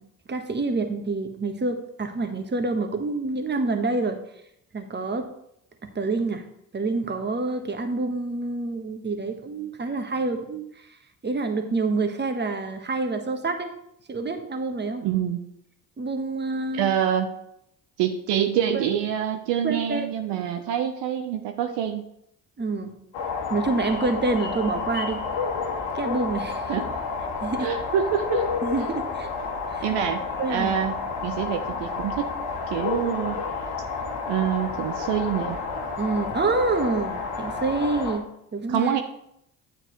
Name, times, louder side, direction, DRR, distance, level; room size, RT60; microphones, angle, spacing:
voice 1, 0.3-4.2 4.7-5.3 5.8-6.4 6.7-10.7 11.2-13.7 14.1-15.0 16.0-16.9 18.7-18.9 19.6-20.1 22.6-22.9 23.5-25.2 25.9-26.9 27.4-27.7 28.6-29.3 29.7-29.9 30.4-30.7 36.0-38.9, right 3 dB, 25° right, 6 dB, 1.2 m, -27 dB
voice 2, 15.0-15.4 16.7-17.3 18.0-22.0 26.7-26.9 27.6-28.4 29.8-32.3 32.7-33.5 34.3-35.6 38.7-39.0, right 9 dB, 65° right, 6 dB, 0.8 m, -26 dB
sound 1, 23.1-38.2, left 4 dB, 75° left, 1.6 m, -30 dB
9.3 x 7.5 x 3.1 m, 0.76 s
hypercardioid pair, 50°, 45 cm